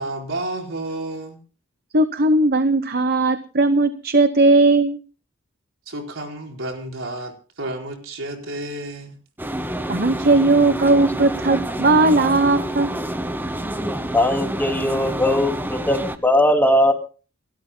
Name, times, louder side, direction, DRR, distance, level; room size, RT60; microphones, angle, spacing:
voice 1, 0.0-1.4 5.9-9.2, right 1 dB, 75° right, 2 dB, 4.5 m, -31 dB
voice 2, 1.9-5.0 9.9-12.9, right 2 dB, 50° right, 11 dB, 0.9 m, -17 dB
sound 1, 9.4-16.2, right 1 dB, 10° right, 1.1 m, -28 dB
voice 3, 14.1-16.9, left 1 dB, 10° left, 4 dB, 2.5 m, -19 dB
29.0 x 13.0 x 2.2 m, 0.36 s
head